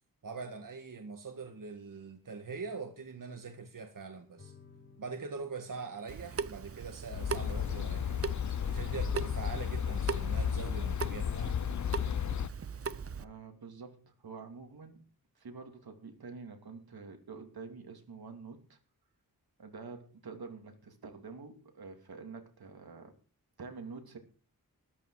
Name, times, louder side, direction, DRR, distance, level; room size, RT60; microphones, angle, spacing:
voice 1, 0.2-4.5 5.0-8.3 8.7-11.5, right 4 dB, 60° right, 5 dB, 1.8 m, -43 dB
sound 1, 4.4-15.4, left 4 dB, 35° left, 3.9 m, -64 dB
Water tap faucet / Sink (filling or washing) / Drip, 6.1-13.2, right 5 dB, 40° right, 0.6 m, -40 dB
sound 2, 7.1-12.5, left 8 dB, 50° left, 0.5 m, -33 dB
voice 2, 13.2-15.1 15.4-18.8 19.6-23.1 23.6-24.2, right 4 dB, 80° right, 5 dB, 2.6 m, -47 dB
13.5 x 12.5 x 4.8 m, 0.38 s
wide cardioid pair, 110°, 37 cm